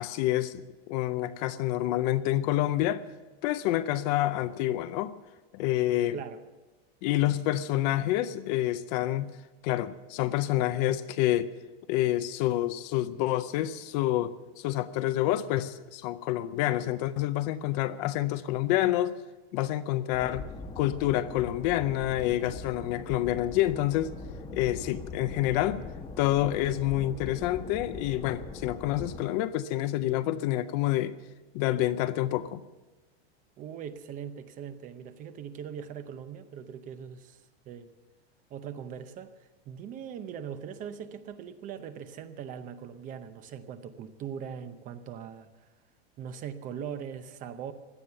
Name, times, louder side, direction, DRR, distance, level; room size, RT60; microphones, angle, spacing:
voice 1, 0.0-3.0 3.4-5.1 5.5-6.2 7.0-9.3 9.6-11.5 11.9-19.2 19.5-20.4 20.8-24.1 24.5-25.8 26.2-31.1 31.5-32.6, left 14 dB, 40° left, 13 dB, 0.6 m, -28 dB
sound 1, 20.1-29.2, left 3 dB, 15° left, 1.2 m, -42 dB
voice 2, 33.6-37.4 37.7-37.9 38.5-39.3 39.7-45.7 46.2-47.7, right 8 dB, 25° right, 11 dB, 0.7 m, -40 dB
17.0 x 11.5 x 6.9 m, 1.2 s
supercardioid pair, 160°, 32 cm